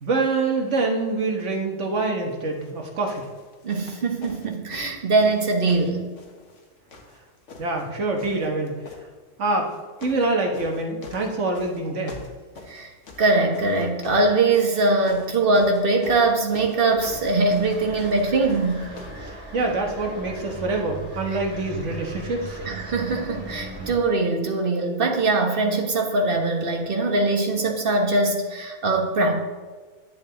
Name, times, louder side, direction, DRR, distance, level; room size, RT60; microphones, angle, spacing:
voice 1, 0.0-3.3 7.6-8.8 9.4-9.7 10.0-12.2 19.5-22.6, right 3 dB, 75° right, 2 dB, 1.6 m, -25 dB
sound 1, 2.5-2.8 3.1-6.6 6.9-7.9 8.2-9.0 9.6-10.3 10.5-19.2 20.1-20.2, left 3 dB, 80° left, 1.5 m, -44 dB
voice 2, 3.6-6.1 12.7-12.9 13.2-18.9 21.3-21.4 22.6-29.4, right 2 dB, 50° right, 2 dB, 1.3 m, -22 dB
sound 2, 16.9-23.9, right 2 dB, 10° right, 2.7 m, -38 dB
10.5 x 7.1 x 3.8 m, 1.4 s
omnidirectional pair, 1.3 m